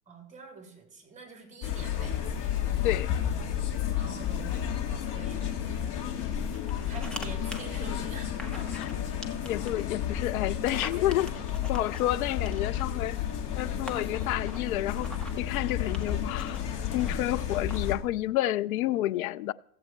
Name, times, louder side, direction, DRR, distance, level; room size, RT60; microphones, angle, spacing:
voice 1, 0.1-2.2 3.9-4.6 5.0-5.6 6.9-8.7, right 4 dB, 15° right, 3.2 m, -46 dB
sound 1, 1.6-18.0, left 9 dB, 40° left, 2.2 m, -32 dB
sound 2, 6.5-7.3 7.5-7.6 8.4-9.0 9.2-9.8 10.5-12.9 13.6-13.7 13.9-15.4 15.9-17.1 17.7-18.0, equal, ahead, 0.3 m, -44 dB
voice 2, 9.4-11.3 11.7-13.2 13.6-16.6 16.9-19.5, left 15 dB, 60° left, 0.6 m, -30 dB
15.0 x 7.6 x 4.4 m
hypercardioid pair, 115°, 48 cm